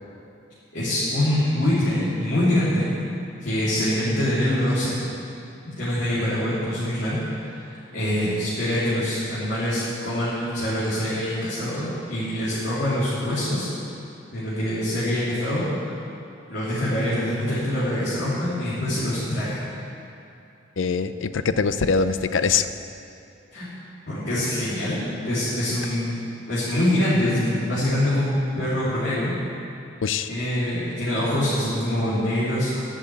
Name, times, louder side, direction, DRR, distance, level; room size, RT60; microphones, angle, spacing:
voice 1, 0.7-3.0 3.4-5.0 5.6-13.7 14.3-15.9 16.5-19.7 23.5-23.7 24.1-26.1 26.5-29.3 30.3-32.8, left 1 dB, 60° left, -12 dB, 3.5 m, -24 dB
voice 2, 20.8-22.7 30.0-30.3, left 5 dB, 85° left, 11 dB, 0.5 m, -23 dB
11.0 x 7.3 x 9.1 m, 2.6 s
head